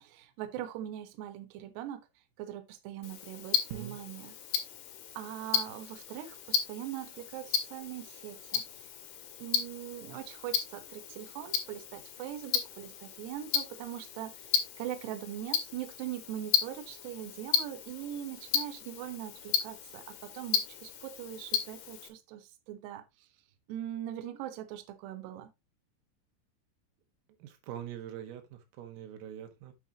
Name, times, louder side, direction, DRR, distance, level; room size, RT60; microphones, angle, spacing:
voice 1, 0.0-2.1 2.4-4.3 5.2-8.6 9.4-14.5 14.8-23.0 23.7-25.5, right 11 dB, 70° right, 2.9 m, -41 dB
Tick-tock, 3.0-22.1, left 9 dB, 70° left, 4.0 m, -35 dB
voice 2, 27.4-29.7, right 10 dB, 85° right, 4.3 m, -43 dB
8.9 x 7.7 x 2.9 m
omnidirectional pair, 5.8 m